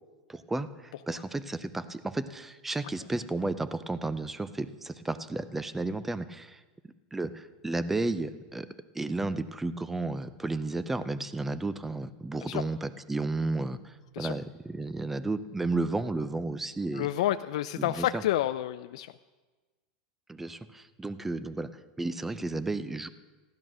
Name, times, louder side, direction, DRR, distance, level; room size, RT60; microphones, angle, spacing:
voice 1, 0.3-6.6 7.1-8.7 8.9-17.1 17.8-18.2 20.3-21.7 22.0-23.1, right 2 dB, 5° right, 14 dB, 0.5 m, -33 dB
voice 2, 16.9-19.1, left 13 dB, 75° left, 10 dB, 0.4 m, -29 dB
15.0 x 10.5 x 6.2 m, 1.3 s
supercardioid pair, 150°, 3 cm